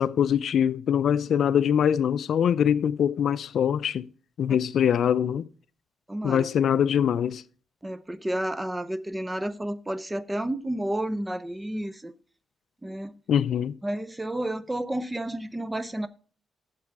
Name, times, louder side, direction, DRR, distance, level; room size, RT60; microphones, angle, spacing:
voice 1, 0.0-4.1 4.4-5.5 6.2-7.4 13.3-13.8, left 8 dB, 70° left, 0.4 m, -23 dB
voice 2, 6.1-6.5 7.8-12.1 12.8-13.2 13.8-16.1, right 1 dB, 15° right, 0.6 m, -31 dB
8.6 x 7.4 x 4.6 m
cardioid pair, 90°, 0 cm